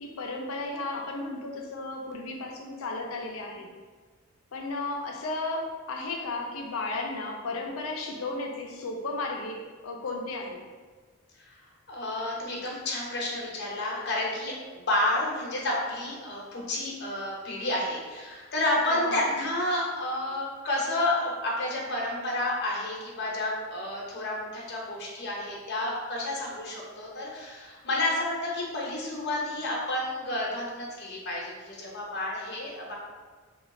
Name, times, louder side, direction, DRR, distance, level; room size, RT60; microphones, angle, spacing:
voice 1, 0.0-3.7 4.5-10.6 18.9-19.3, left 2 dB, 80° left, 1 dB, 0.6 m, -34 dB
voice 2, 11.9-32.9, left 1 dB, 55° left, -3 dB, 0.9 m, -30 dB
3.0 x 2.3 x 4.1 m, 1.4 s
head